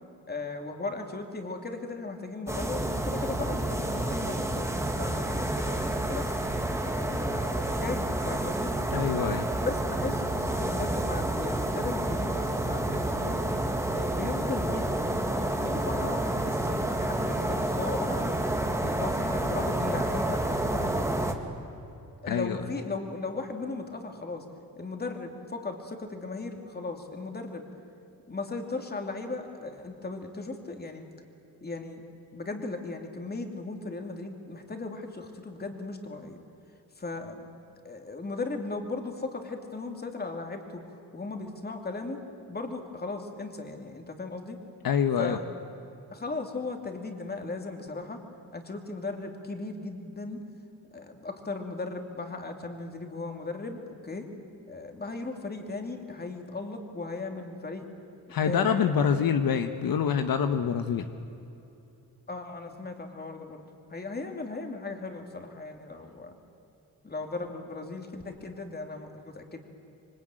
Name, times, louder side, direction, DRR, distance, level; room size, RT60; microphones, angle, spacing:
voice 1, 0.3-6.3 7.0-8.7 9.3-13.4 13.9-18.3 18.8-21.4 22.2-24.5 24.8-27.7 28.3-31.0 31.6-32.0 32.3-36.4 37.0-37.5 37.8-42.2 42.5-44.6 45.2-45.5 46.1-48.2 48.5-50.4 50.9-54.3 54.7-57.9 58.4-59.2 62.3-63.6 63.9-66.3 67.0-69.6, left 3 dB, 25° left, 4 dB, 2.8 m, -37 dB
sound 1, 2.5-21.3, right 1 dB, 10° right, 1.9 m, -29 dB
voice 2, 8.9-9.5 22.3-22.6 44.8-45.4 58.3-61.1, left 7 dB, 70° left, 8 dB, 1.2 m, -26 dB
26.0 x 24.5 x 9.1 m, 2.8 s
wide cardioid pair, 145°, 37 cm